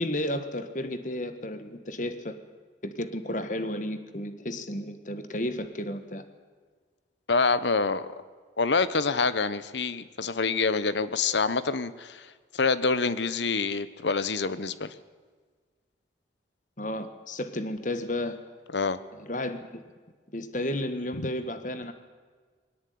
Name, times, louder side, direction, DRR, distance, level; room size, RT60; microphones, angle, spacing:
voice 1, 0.0-2.3 2.8-6.2 16.8-18.4 19.2-19.8 20.3-21.9, left 1 dB, 45° left, 10 dB, 1.4 m, -32 dB
voice 2, 7.3-8.1 8.6-12.3 12.5-14.9 18.7-19.0, left 4 dB, 75° left, 15 dB, 1.0 m, -26 dB
21.0 x 17.5 x 9.4 m, 1.5 s
head